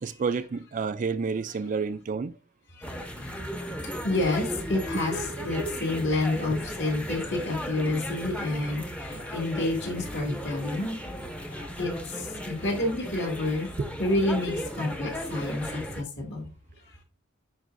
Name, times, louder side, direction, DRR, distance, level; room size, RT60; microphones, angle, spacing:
voice 1, 0.0-2.3 5.1-6.0 6.5-6.6 13.8-13.9, right 5 dB, 40° right, 0.3 m, -31 dB
sound 1, 2.8-16.0, equal, 5° left, 0.7 m, -36 dB
voice 2, 4.0-11.0 11.5-13.7 14.0-16.5, left 2 dB, 55° left, 2.4 m, -29 dB
9.4 x 5.3 x 2.6 m
head